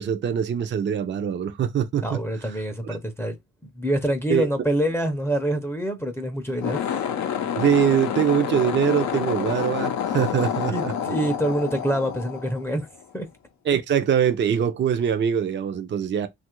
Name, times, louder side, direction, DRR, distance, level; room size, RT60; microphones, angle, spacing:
voice 1, 0.0-2.2 2.8-3.0 4.3-4.5 7.6-10.9 13.7-16.3, right 8 dB, 40° right, 0.5 m, -23 dB
voice 2, 2.0-3.3 3.6-6.8 10.7-12.9 13.1-13.3, right 1 dB, 10° left, 0.6 m, -26 dB
sound 1, 6.5-13.0, left 8 dB, 65° left, 0.5 m, -28 dB
2.9 x 2.4 x 2.9 m
cardioid pair, 90°, 30 cm